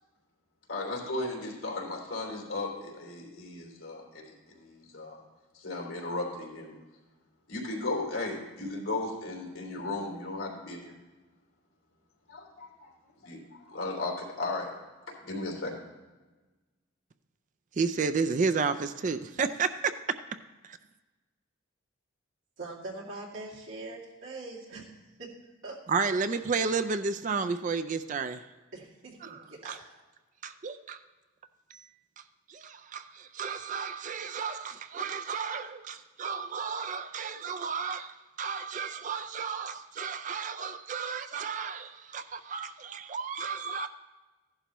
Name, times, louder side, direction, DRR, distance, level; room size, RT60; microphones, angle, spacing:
voice 1, 0.7-5.2 5.5-6.7 7.5-10.9 12.3-12.9 13.2-14.7 15.2-15.7, left 2 dB, 75° left, 3.0 m, -36 dB
voice 2, 17.8-19.9 25.9-28.4 29.2-29.8 30.4-31.0 31.7-31.9 32.2-32.3 32.5-43.9, right 5 dB, 35° right, 0.4 m, -32 dB
voice 3, 22.6-25.3 25.6-25.8 28.7-29.8, right 2 dB, 80° right, 2.5 m, -42 dB
15.0 x 11.5 x 3.0 m
head